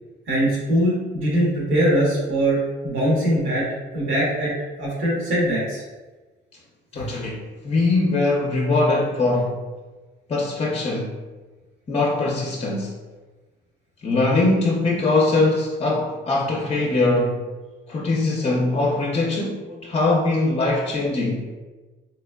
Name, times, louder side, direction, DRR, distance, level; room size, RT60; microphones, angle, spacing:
voice 1, 0.3-3.6 3.9-4.5 4.8-5.8 6.9-7.0, right 1 dB, 80° right, -4 dB, 1.3 m, -21 dB
voice 2, 6.9-9.7 10.3-11.1 11.9-12.9 14.0-17.4 17.9-21.4, left 2 dB, 30° left, -1 dB, 0.6 m, -22 dB
3.4 x 3.1 x 2.2 m, 1.2 s
cardioid pair, 90°, 20 cm